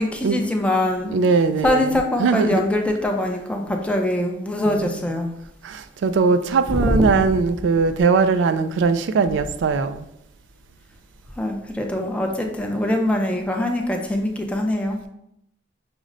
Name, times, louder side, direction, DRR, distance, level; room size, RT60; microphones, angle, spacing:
voice 1, 0.0-1.2 1.6-5.3 6.7-7.1 11.4-15.0, left 1 dB, 5° left, 0.4 m, -23 dB
voice 2, 1.1-1.8 2.2-2.6 4.7-4.9 5.6-10.1, right 4 dB, 75° right, 0.3 m, -20 dB
6.0 x 2.1 x 3.8 m
head